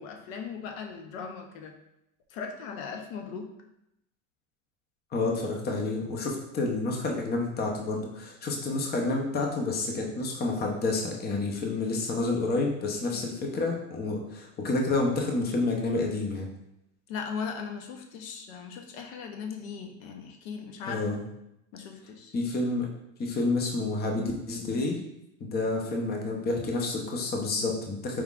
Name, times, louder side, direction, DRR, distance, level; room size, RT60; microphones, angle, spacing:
voice 1, 0.0-1.7 2.3-3.5 13.1-13.3 17.1-21.1 21.7-22.3, left 6 dB, 75° left, 4 dB, 0.8 m, -38 dB
voice 2, 5.1-16.5 20.9-21.2 22.3-22.9 23.2-25.0 25.4-28.2, left 3 dB, 25° left, 1 dB, 0.7 m, -29 dB
4.7 x 3.4 x 2.4 m, 0.82 s
supercardioid pair, 115°, 40 cm